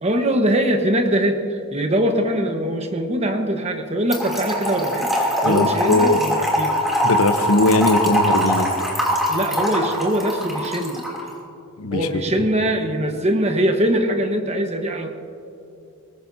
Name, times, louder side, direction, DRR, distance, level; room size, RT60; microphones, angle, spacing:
voice 1, 0.0-5.1 5.4-6.8 9.3-11.0 11.9-15.1, right 1 dB, 30° right, 4 dB, 1.3 m, -22 dB
Trickle dribble / Fill (with liquid), 4.1-11.2, equal, ahead, 2.9 m, -22 dB
voice 2, 5.4-6.2 7.0-8.7 11.8-12.1, left 2 dB, 75° left, 9 dB, 0.9 m, -19 dB
22.0 x 18.5 x 2.8 m, 2.7 s
head